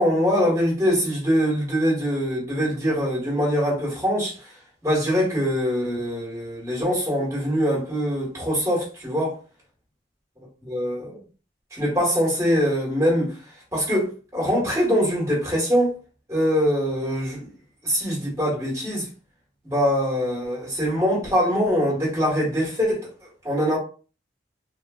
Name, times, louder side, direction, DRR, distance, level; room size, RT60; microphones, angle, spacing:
voice 1, 0.0-4.5 4.8-9.4 10.7-11.2 11.7-13.4 13.7-16.0 16.3-17.5 17.8-19.1 19.6-23.1 23.4-23.8, equal, 15° right, 1.2 m, -23 dB
3.2 x 2.4 x 2.3 m
head